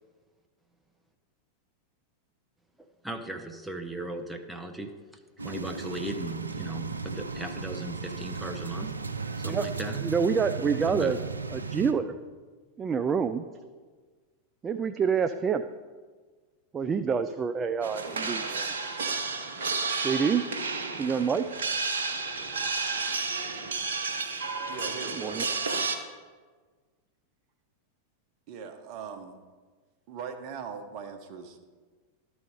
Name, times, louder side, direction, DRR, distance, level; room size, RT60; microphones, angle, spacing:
voice 1, 3.0-8.9 9.4-10.0 10.8-11.2, right 2 dB, 5° right, 4 dB, 0.9 m, -37 dB
sound 1, 5.4-11.9, right 4 dB, 85° right, 0.5 m, -35 dB
voice 2, 10.0-11.2 11.5-12.2 12.8-13.4 14.6-15.6 16.7-18.7 20.0-20.4 21.0-21.4 25.2-25.4, right 6 dB, 25° right, 9 dB, 0.4 m, -27 dB
sound 2, 17.8-26.0, right 4 dB, 70° right, 1.0 m, -31 dB
voice 3, 24.7-25.7 28.5-29.4 30.1-31.6, right 6 dB, 45° right, 6 dB, 1.1 m, -40 dB
12.5 x 4.1 x 4.9 m, 1.4 s
figure-of-eight pair, 90°, 0 cm